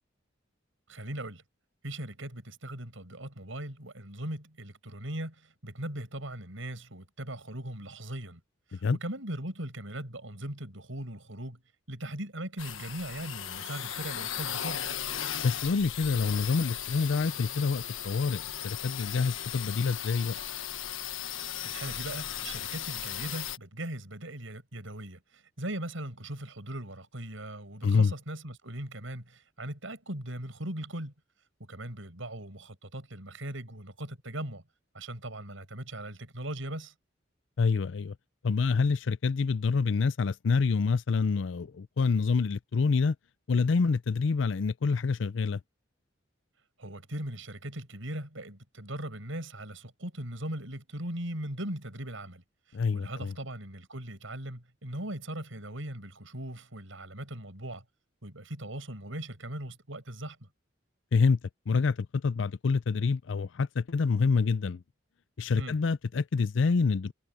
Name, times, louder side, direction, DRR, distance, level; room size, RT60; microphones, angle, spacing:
voice 1, 0.9-1.4 1.8-8.4 8.7-11.6 11.9-14.8 21.6-31.1 31.6-34.6 34.9-36.9 46.8-57.8 58.2-60.5 65.5-65.8, right 1 dB, 85° right, 5.8 m, -39 dB
sound 1, 12.6-23.6, left 10 dB, 90° left, 1.4 m, -37 dB
voice 2, 15.4-20.4 27.8-28.1 37.6-38.2 38.4-43.2 43.5-45.6 52.7-53.3 61.1-61.4 61.7-64.8 65.4-67.1, left 4 dB, 70° left, 0.5 m, -27 dB
head